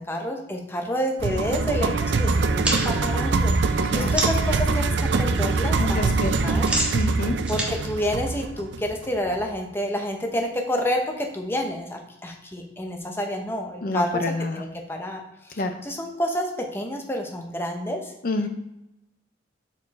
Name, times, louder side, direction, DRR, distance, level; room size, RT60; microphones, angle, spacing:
voice 1, 0.0-6.1 6.4-6.6 7.5-14.1 14.5-18.1, equal, 15° left, 2 dB, 0.8 m, -29 dB
sound 1, 1.2-9.4, right 3 dB, 70° right, 0.4 m, -24 dB
sound 2, 2.6-4.6 4.9-5.4 5.6-8.9, right 1 dB, 5° right, 1.4 m, -30 dB
voice 2, 5.8-6.3 6.9-7.4 13.8-14.6 15.6-15.8 18.2-18.5, left 2 dB, 50° left, 7 dB, 0.5 m, -27 dB
7.0 x 4.5 x 4.1 m, 0.90 s
head